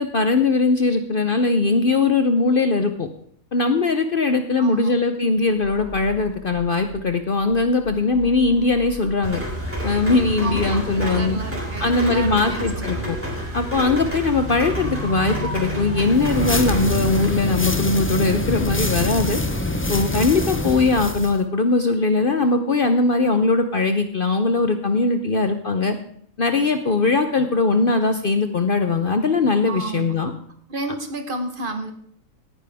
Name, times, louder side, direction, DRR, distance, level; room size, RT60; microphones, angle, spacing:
voice 1, 0.0-3.1 3.5-9.4 9.8-11.4 11.8-13.2 13.5-19.4 19.9-26.0 26.4-30.3 30.9-31.0, left 3 dB, 50° left, 7 dB, 0.8 m, -20 dB
voice 2, 4.6-4.9 10.4-13.1 29.7-30.1 30.7-31.9, right 2 dB, 40° right, 6 dB, 1.3 m, -31 dB
sound 1, 5.4-10.7, left 1 dB, 85° left, 5.6 m, -42 dB
Rain, 9.2-17.2, equal, 10° right, 3.4 m, -29 dB
sound 2, 16.1-21.4, left 1 dB, 15° left, 0.5 m, -25 dB
17.0 x 9.9 x 3.5 m, 0.64 s
omnidirectional pair, 1.5 m